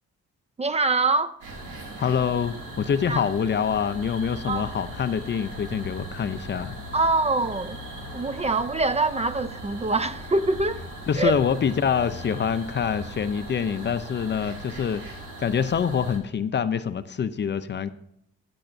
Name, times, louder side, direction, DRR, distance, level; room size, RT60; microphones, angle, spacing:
voice 1, 0.6-1.4 3.1-3.2 4.5-4.7 6.9-7.8 8.1-10.8 11.2-11.3, right 3 dB, 20° right, 0.5 m, -24 dB
sound 1, 1.4-16.2, equal, 85° right, 2.5 m, -39 dB
voice 2, 2.0-6.7 11.1-15.0 15.4-17.9, left 7 dB, 35° left, 0.5 m, -25 dB
13.0 x 7.8 x 2.6 m
cardioid pair, 90°, 30 cm